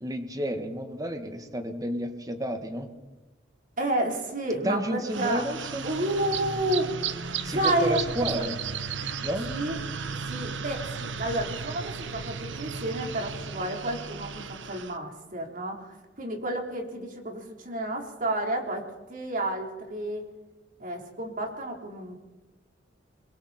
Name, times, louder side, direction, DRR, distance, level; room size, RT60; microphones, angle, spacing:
voice 1, 0.0-2.9 4.6-5.8 7.4-8.6 9.2-9.5, equal, 20° right, 7 dB, 1.8 m, -31 dB
voice 2, 3.8-5.4 5.8-6.9 7.5-8.0 8.3-8.4 9.5-9.8 10.3-20.3 20.8-22.1, right 1 dB, 50° right, 2 dB, 4.1 m, -30 dB
sound 1, 5.1-15.0, right 5 dB, 85° right, 1.2 m, -35 dB
28.5 x 22.5 x 4.4 m, 1.2 s
head